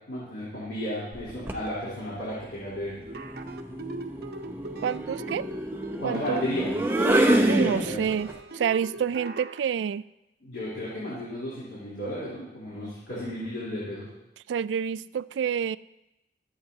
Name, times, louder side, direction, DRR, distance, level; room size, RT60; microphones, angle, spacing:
voice 1, 0.1-3.0 6.0-6.7 7.1-8.0 10.4-14.1, equal, 80° left, -9 dB, 3.6 m, -33 dB
sound 1, 1.1-1.7 3.0-8.3, right 1 dB, 10° right, 0.7 m, -27 dB
sound 2, 3.1-9.6, right 2 dB, 60° right, 0.9 m, -40 dB
voice 2, 4.8-5.5 6.0-6.4 7.4-10.0 14.5-15.8, right 7 dB, 85° right, 17 dB, 0.3 m, -28 dB
22.5 x 7.9 x 2.8 m, 0.94 s
head